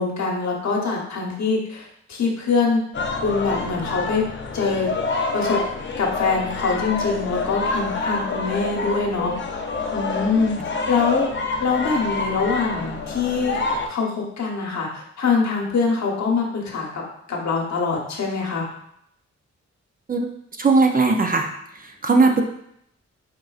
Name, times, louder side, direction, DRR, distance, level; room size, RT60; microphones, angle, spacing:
voice 1, 0.0-2.8 3.2-4.2 4.5-4.9 5.3-5.6 6.0-9.3 9.9-10.6 10.9-11.3 11.6-13.6 13.9-17.0 17.3-18.7, left 4 dB, 70° left, -1 dB, 1.0 m, -23 dB
sound 1, 2.9-13.9, left 3 dB, 40° left, 0.5 m, -27 dB
voice 2, 20.6-21.5 21.7-22.4, right 3 dB, 30° right, 3 dB, 0.4 m, -18 dB
4.2 x 3.8 x 2.4 m, 0.73 s
wide cardioid pair, 110°, 29 cm